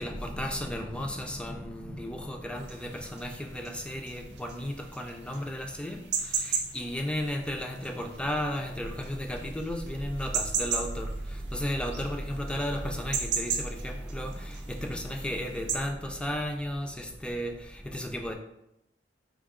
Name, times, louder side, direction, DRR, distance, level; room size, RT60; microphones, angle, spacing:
voice 1, 0.0-18.3, equal, 5° left, 3 dB, 0.3 m, -34 dB
sound 1, 2.6-15.8, right 6 dB, 65° right, 0.4 m, -35 dB
4.7 x 2.0 x 3.6 m, 0.82 s
head